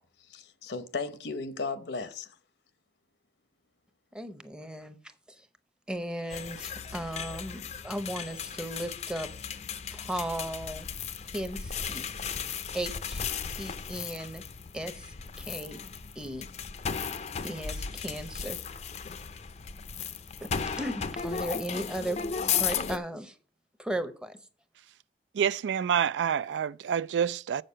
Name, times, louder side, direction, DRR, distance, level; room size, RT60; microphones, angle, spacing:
voice 1, 0.3-2.4, left 4 dB, 75° left, 0.8 m, -35 dB
voice 2, 4.1-5.0 5.3-5.4 5.9-9.3 9.9-10.9 11.3-12.1 12.7-13.2 13.6-14.4 14.7-15.8 16.2-16.5 17.4-18.6 20.4-20.5 20.8-22.2 22.6-23.3 23.8-24.4, right 1 dB, 5° right, 0.7 m, -36 dB
sound 1, 6.3-23.0, left 6 dB, 40° left, 0.5 m, -35 dB
voice 3, 25.3-27.6, right 8 dB, 85° right, 0.3 m, -27 dB
7.6 x 6.6 x 5.5 m
head